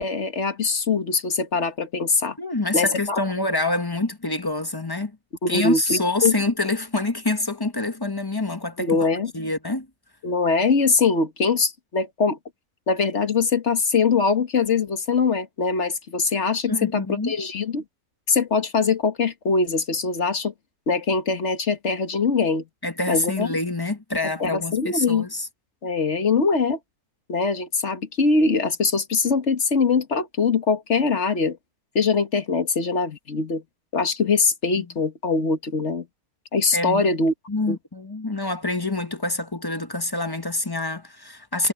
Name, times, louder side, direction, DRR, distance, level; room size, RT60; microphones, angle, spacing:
voice 1, 0.0-2.4 2.7-3.2 5.4-6.4 8.8-9.3 10.2-12.4 12.9-17.0 17.3-17.8 18.3-20.5 20.9-22.6 23.1-23.5 24.4-25.3 25.8-26.8 27.3-31.6 32.0-33.6 33.9-36.1 36.5-37.3 37.7-37.8, left 4 dB, 50° left, 1.8 m, -22 dB
voice 2, 2.4-5.1 5.5-9.0 9.3-9.9 16.7-17.3 22.8-25.5 34.8-34.9 36.7-37.1 37.5-41.7, left 2 dB, 15° left, 1.1 m, -26 dB
omnidirectional pair, 1.6 m